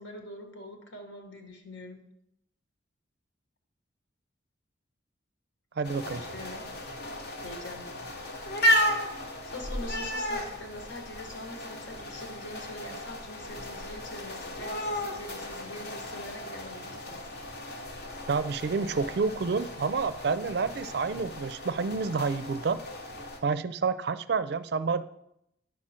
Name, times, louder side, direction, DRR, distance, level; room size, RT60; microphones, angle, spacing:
voice 1, 0.0-2.0 6.0-6.6 7.4-8.0 9.4-17.2, left 1 dB, 70° left, 3 dB, 1.5 m, -43 dB
sound 1, 5.8-23.4, equal, 55° left, 1.1 m, -34 dB
voice 2, 5.8-6.2 18.3-22.8 23.4-25.0, right 4 dB, 55° right, 14 dB, 0.4 m, -29 dB
9.5 x 6.1 x 4.3 m, 0.80 s
head